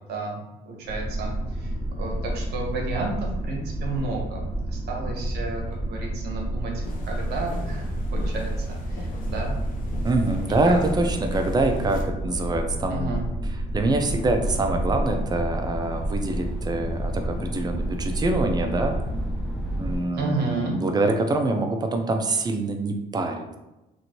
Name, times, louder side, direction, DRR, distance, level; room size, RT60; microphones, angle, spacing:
voice 1, 0.0-1.3 1.6-4.4 4.7-6.7 7.1-9.5 10.6-10.8 12.9-13.2 20.1-20.8, right 3 dB, 75° right, 0 dB, 0.9 m, -32 dB
sound 1, 0.8-20.0, right 1 dB, 30° left, 1.0 m, -29 dB
sound 2, 6.8-12.0, left 2 dB, 55° left, 0.6 m, -39 dB
voice 2, 10.0-13.1 13.4-19.0 19.8-23.5, right 2 dB, 25° right, 4 dB, 0.4 m, -25 dB
sound 3, 14.0-20.1, left 1 dB, ahead, 0.7 m, -41 dB
3.0 x 2.5 x 2.8 m, 0.97 s
cardioid pair, 110°, 17 cm